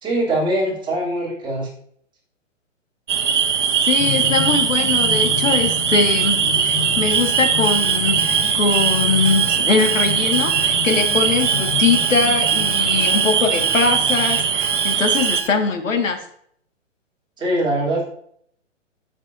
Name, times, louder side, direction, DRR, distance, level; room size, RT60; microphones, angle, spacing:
voice 1, 0.0-1.7 17.4-18.0, right 1 dB, 10° right, -5 dB, 3.0 m, -22 dB
sound 1, 3.1-15.4, right 7 dB, 70° right, 1.3 m, -20 dB
voice 2, 3.8-16.2, left 4 dB, 75° left, 4 dB, 1.9 m, -21 dB
sound 2, 4.0-15.0, left 9 dB, 40° left, 0.6 m, -31 dB
Alarm, 7.1-15.5, right 8 dB, 40° right, 1.1 m, -34 dB
12.5 x 6.6 x 2.7 m, 0.64 s
hypercardioid pair, 135°, 38 cm